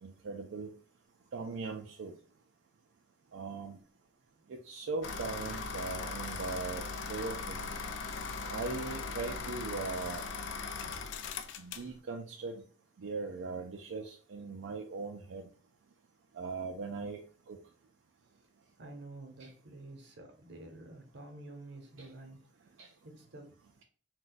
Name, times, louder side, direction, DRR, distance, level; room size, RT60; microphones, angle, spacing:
voice 1, 0.0-0.7 1.3-2.1 3.3-3.8 4.5-6.8 7.1-7.7 8.5-10.2 11.6-12.6 13.0-15.5 16.3-17.2 17.5-17.6 19.4-19.5 22.0-22.1 22.8-22.9, right 4 dB, 90° right, 2 dB, 0.4 m, -39 dB
sound 1, 5.0-11.9, left 4 dB, 70° left, 0.3 m, -39 dB
voice 2, 18.8-22.7 23.0-23.6, right 2 dB, 65° right, 3 dB, 0.8 m, -50 dB
2.5 x 2.2 x 3.9 m, 0.40 s
head